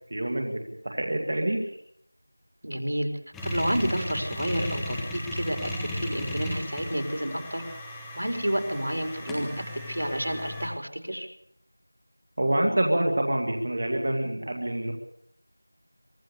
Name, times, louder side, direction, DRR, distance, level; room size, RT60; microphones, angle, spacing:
voice 1, 0.1-1.6 12.4-14.9, right 1 dB, 30° right, 1 dB, 2.0 m, -26 dB
voice 2, 2.6-3.1 3.4-7.6 8.2-11.3, equal, 70° right, 5 dB, 4.3 m, -30 dB
sound 1, 3.3-10.7, left 1 dB, ahead, 1.0 m, -35 dB
24.0 x 13.5 x 8.5 m, 0.73 s
figure-of-eight pair, 180°, 0 cm